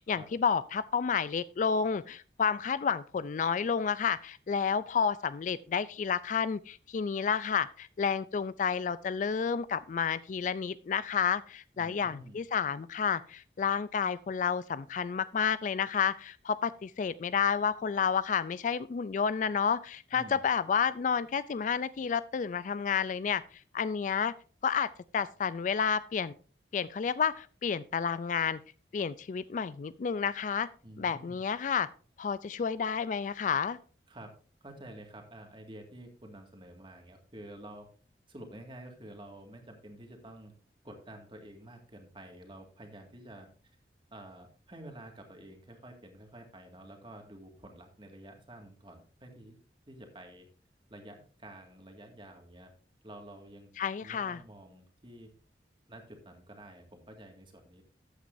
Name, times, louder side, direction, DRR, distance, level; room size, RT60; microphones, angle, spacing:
voice 1, 0.0-23.4 23.7-24.3 24.6-26.3 26.7-28.6 28.9-30.7 31.0-31.9 32.2-33.8 53.8-54.4, left 6 dB, 45° left, 17 dB, 0.3 m, -30 dB
voice 2, 11.7-12.4 20.1-20.4 30.8-31.4 34.1-34.3 34.6-37.9 38.3-40.5 40.8-43.5 44.1-49.6 49.9-50.5 50.9-52.7 53.0-53.7 54.0-55.3 55.9-57.8, right 1 dB, 30° right, 3 dB, 1.9 m, -49 dB
13.5 x 8.4 x 2.6 m, 0.40 s
head